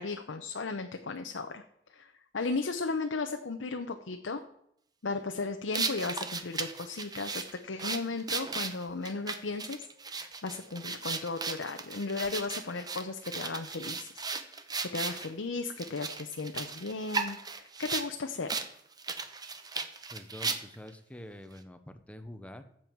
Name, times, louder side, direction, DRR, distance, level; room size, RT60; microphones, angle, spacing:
voice 1, 0.0-1.6 1.9-4.4 5.0-14.2 14.9-18.5, left 3 dB, 75° left, 5 dB, 0.8 m, -35 dB
sound 1, 5.7-15.3 15.8-18.1 18.5-18.7 19.0-20.9, right 4 dB, 20° right, 0.8 m, -36 dB
voice 2, 20.1-22.6, left 1 dB, 5° left, 9 dB, 0.8 m, -46 dB
15.5 x 7.6 x 4.6 m, 0.74 s
head